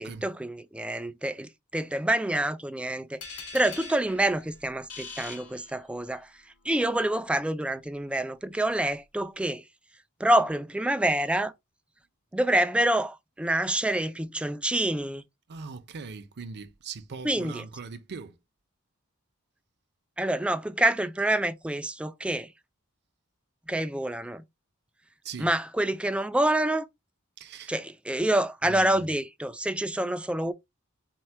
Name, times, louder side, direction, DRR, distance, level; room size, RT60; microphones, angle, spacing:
voice 1, 0.0-3.2 3.5-6.3 6.7-9.6 10.2-11.5 12.3-15.2 17.2-17.6 20.2-22.5 23.7-24.4 25.4-26.9 27.7-30.5, right 1 dB, 5° right, 0.3 m, -27 dB
sound 1, 3.2-6.3, left 4 dB, 85° left, 2.1 m, -43 dB
voice 2, 15.5-18.4 25.2-25.5 27.4-27.7 28.6-29.1, right 5 dB, 50° right, 0.6 m, -40 dB
4.4 x 2.2 x 4.4 m
head